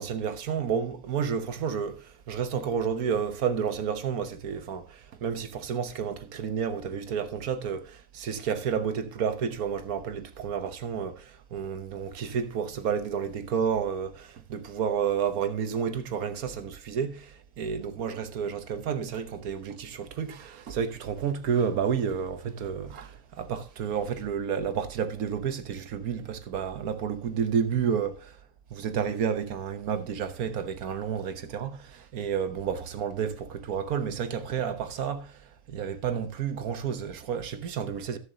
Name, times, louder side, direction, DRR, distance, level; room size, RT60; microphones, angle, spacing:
voice 1, 0.0-28.1 28.7-38.2, right 7 dB, 65° right, 1.4 m, -30 dB
16.0 x 7.1 x 2.8 m
omnidirectional pair, 1.7 m